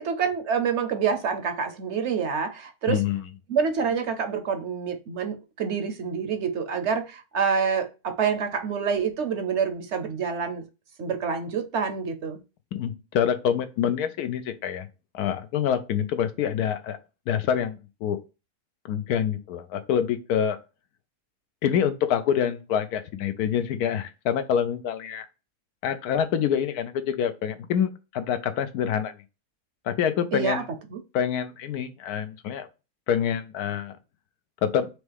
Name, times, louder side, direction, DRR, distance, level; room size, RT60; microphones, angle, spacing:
voice 1, 0.0-3.0 3.5-10.6 11.0-12.4 30.3-30.6 30.9-31.0, right 6 dB, 60° right, 0.9 m, -27 dB
voice 2, 2.9-3.2 12.7-14.9 15.1-17.0 17.3-18.2 18.9-20.6 21.6-25.3 25.8-29.1 29.9-30.6 31.1-32.7 33.1-33.9 34.6-34.9, left 8 dB, 85° left, 1.2 m, -26 dB
4.8 x 3.1 x 3.3 m
omnidirectional pair, 1.6 m